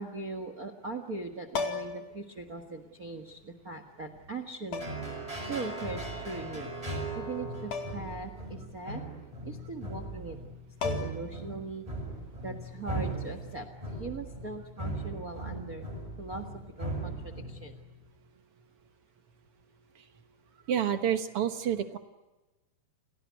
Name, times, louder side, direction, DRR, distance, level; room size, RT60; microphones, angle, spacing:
voice 1, 0.0-4.8 5.3-6.7 7.1-9.0 9.4-10.4 10.8-11.8 12.4-15.8 16.2-16.4 16.8-17.8, right 3 dB, 45° right, 9 dB, 1.1 m, -40 dB
sound 1, 1.5-2.1 3.4-3.5 4.7-5.2 7.7-8.1 8.5-8.6 10.4-10.5 10.8-11.4 13.4-13.6, left 5 dB, 55° left, 3.6 m, -35 dB
sound 2, 4.8-17.9, right 2 dB, 10° right, 6.7 m, -38 dB
voice 2, 20.7-22.0, right 9 dB, 65° right, 9 dB, 1.4 m, -28 dB
30.0 x 18.0 x 9.5 m, 1.1 s
omnidirectional pair, 4.4 m